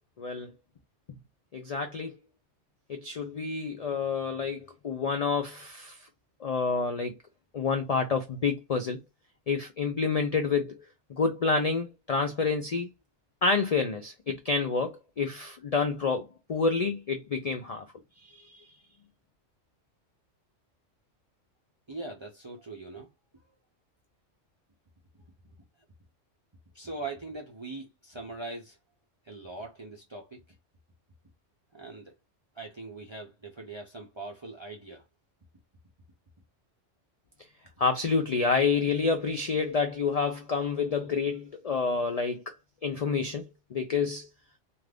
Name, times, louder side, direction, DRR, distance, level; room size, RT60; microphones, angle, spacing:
voice 1, 0.2-0.5 1.5-2.1 2.9-6.0 6.4-7.1 7.5-9.0 9.5-10.8 11.2-12.9 13.4-17.8 18.2-18.6 37.8-42.5 42.8-44.3, left 4 dB, 60° left, 0.4 m, -28 dB
voice 2, 21.9-23.1 26.7-28.8 29.2-30.4 31.7-32.1 32.6-35.0, right 3 dB, 40° right, 0.4 m, -41 dB
2.5 x 2.4 x 3.3 m
omnidirectional pair, 1.2 m